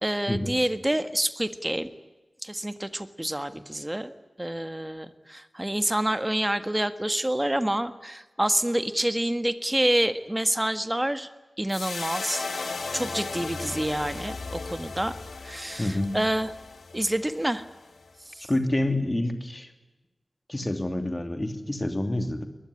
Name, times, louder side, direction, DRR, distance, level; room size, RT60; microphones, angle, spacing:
voice 1, 0.0-1.9 2.4-11.3 11.6-15.1 15.4-16.5 16.9-17.6 18.4-18.5, right 1 dB, 15° right, 11 dB, 1.6 m, -28 dB
sound 1, 11.7-18.1, left 4 dB, 85° left, 2.9 m, -36 dB
voice 2, 15.8-16.2 18.4-19.7 20.5-22.5, left 1 dB, 20° left, 7 dB, 2.9 m, -28 dB
23.0 x 20.0 x 9.9 m, 1.1 s
wide cardioid pair, 100°, 0 cm